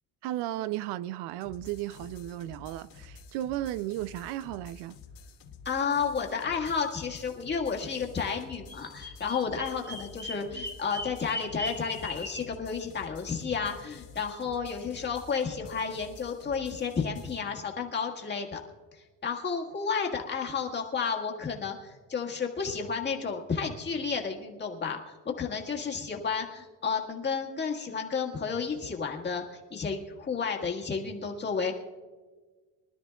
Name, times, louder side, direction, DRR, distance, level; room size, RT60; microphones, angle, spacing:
voice 1, 0.2-5.0, right 14 dB, 80° right, 0.5 m, -34 dB
sound 1, 1.4-17.4, left 5 dB, 80° left, 2.8 m, -50 dB
voice 2, 5.6-18.6 18.9-31.7, left 5 dB, 25° left, 1.7 m, -32 dB
Bird vocalization bird call bird song, 8.7-12.5, left 1 dB, 10° right, 1.9 m, -39 dB
24.5 x 12.5 x 2.3 m
cardioid pair, 155°, 41 cm